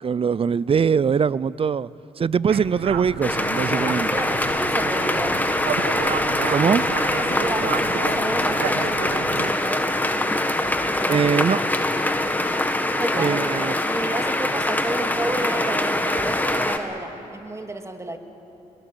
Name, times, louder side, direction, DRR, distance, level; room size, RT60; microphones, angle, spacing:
voice 1, 0.0-1.9 2.2-4.1 6.5-6.8 11.1-11.6 13.1-13.8, right 6 dB, 40° right, 0.5 m, -22 dB
sound 1, 2.4-9.5, right 8 dB, 85° right, 1.1 m, -32 dB
sound 2, 3.2-16.8, left 1 dB, 10° left, 1.7 m, -23 dB
voice 2, 4.1-5.4 7.2-9.9 10.8-11.2 13.0-18.2, right 2 dB, 20° right, 2.1 m, -31 dB
23.0 x 22.0 x 7.4 m
supercardioid pair, 60°, 15 cm